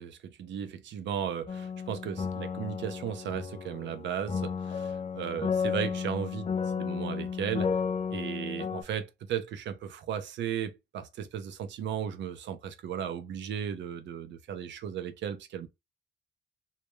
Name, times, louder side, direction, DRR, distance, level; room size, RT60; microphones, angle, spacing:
voice 1, 0.0-7.8 8.1-15.7, right 8 dB, 65° right, 0.5 m, -35 dB
sound 1, 1.5-8.8, left 6 dB, 30° left, 0.4 m, -33 dB
2.2 x 2.1 x 2.9 m
cardioid pair, 90°, 20 cm